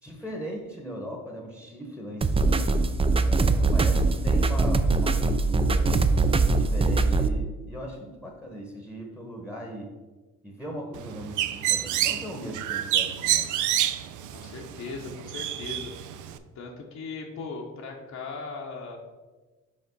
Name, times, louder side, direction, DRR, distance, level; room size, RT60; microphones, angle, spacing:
voice 1, 0.0-2.7 3.2-6.0 6.6-9.9 10.4-13.5, equal, 5° right, 1 dB, 1.0 m, -39 dB
sound 1, 2.2-7.3, right 3 dB, 20° right, 0.4 m, -22 dB
Bird, 10.9-16.4, right 12 dB, 80° right, 0.5 m, -28 dB
voice 2, 14.3-15.9 16.5-19.0, left 4 dB, 65° left, -1 dB, 0.9 m, -38 dB
5.2 x 3.5 x 5.2 m, 1.2 s
cardioid pair, 90°, 30 cm